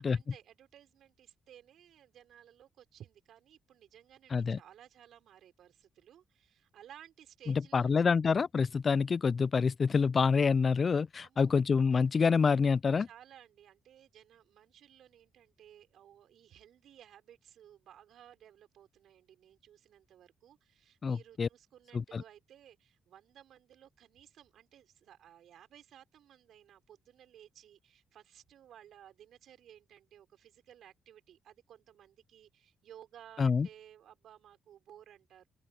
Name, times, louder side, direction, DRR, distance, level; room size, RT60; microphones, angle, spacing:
voice 1, 0.0-8.2 11.2-11.6 13.0-35.5, right 10 dB, 75° right, 5.7 m, -57 dB
voice 2, 7.5-13.1 21.0-21.5 21.9-22.2 33.4-33.7, left 5 dB, 45° left, 0.3 m, -27 dB
open air
supercardioid pair, 55°, 0 cm